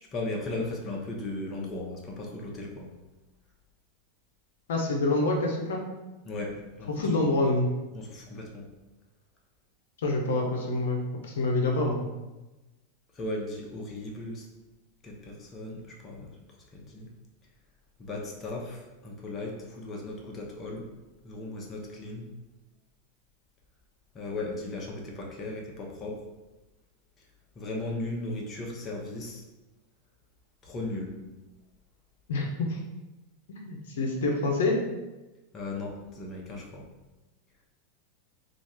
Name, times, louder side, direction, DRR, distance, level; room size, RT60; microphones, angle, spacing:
voice 1, 0.1-2.9 6.2-7.0 7.9-8.7 13.1-14.5 15.0-16.4 16.7-17.1 18.0-20.9 21.2-22.3 24.1-26.2 27.5-29.4 30.6-31.2 35.5-36.9, left 2 dB, 30° left, -1 dB, 0.9 m, -36 dB
voice 2, 4.7-5.8 6.9-7.7 10.0-12.1 32.3-32.8 33.5-34.8, left 2 dB, 80° left, 0 dB, 0.6 m, -27 dB
3.1 x 2.4 x 4.2 m, 1.1 s
hypercardioid pair, 110°, 0 cm